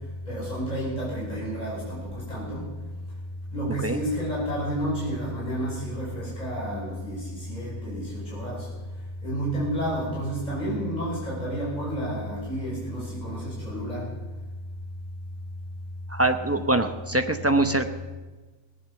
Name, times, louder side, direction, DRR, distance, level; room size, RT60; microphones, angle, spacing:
voice 1, 0.3-2.7 3.5-8.7 9.2-14.0, equal, 25° left, -7 dB, 6.2 m, -30 dB
voice 2, 16.1-17.9, right 2 dB, 15° right, 6 dB, 0.6 m, -23 dB
18.0 x 9.6 x 7.2 m, 1.3 s
omnidirectional pair, 1.7 m